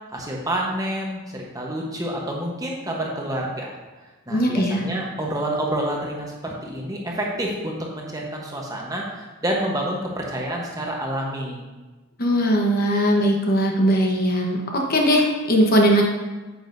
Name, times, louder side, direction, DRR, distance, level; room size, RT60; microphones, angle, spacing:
voice 1, 0.1-3.7 4.3-11.6, right 1 dB, 15° right, -2 dB, 1.0 m, -28 dB
voice 2, 4.3-4.8 12.2-16.0, equal, 40° left, 0 dB, 1.0 m, -19 dB
9.2 x 7.6 x 2.6 m, 1.2 s
head